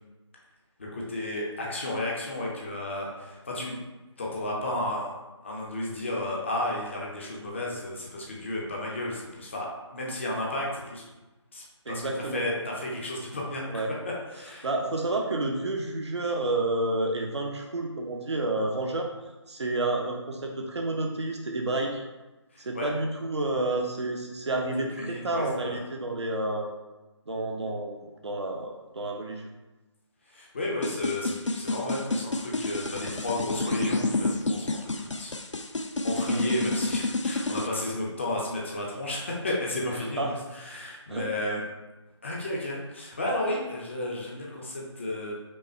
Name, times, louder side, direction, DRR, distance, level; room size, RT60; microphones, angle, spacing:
voice 1, 0.8-3.8 4.2-5.1 5.4-11.0 11.5-14.7 22.5-22.9 25.0-25.8 30.3-35.4 36.0-40.2 40.5-41.6 42.2-45.3, left 1 dB, 25° left, -3 dB, 0.6 m, -33 dB
voice 2, 11.9-12.4 13.7-13.9 14.6-19.1 19.5-22.0 22.6-26.7 27.3-29.5 36.2-36.4 39.9-40.3 41.1-41.3, right 2 dB, 65° right, 1 dB, 0.7 m, -30 dB
sound 1, 30.8-37.7, left 2 dB, 75° left, 0.5 m, -29 dB
5.3 x 2.2 x 4.4 m, 1.1 s
figure-of-eight pair, 155°, 16 cm